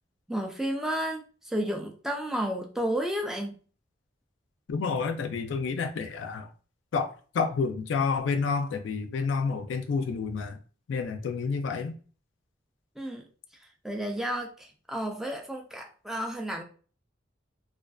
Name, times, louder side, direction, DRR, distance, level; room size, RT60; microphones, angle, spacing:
voice 1, 0.3-3.5 13.0-13.2 13.8-16.6, equal, ahead, 0.3 m, -32 dB
voice 2, 4.7-6.5 6.9-7.1 7.3-10.6 10.9-11.9, left 5 dB, 70° left, 0.4 m, -29 dB
2.4 x 2.3 x 2.3 m
head